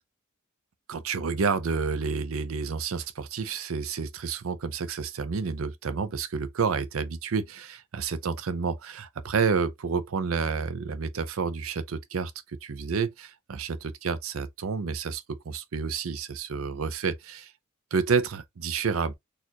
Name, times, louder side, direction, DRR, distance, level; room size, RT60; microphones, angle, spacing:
voice 1, 0.9-12.3 12.6-17.5 17.9-19.1, right 5 dB, 85° right, 0.6 m, -29 dB
4.3 x 2.5 x 2.8 m
head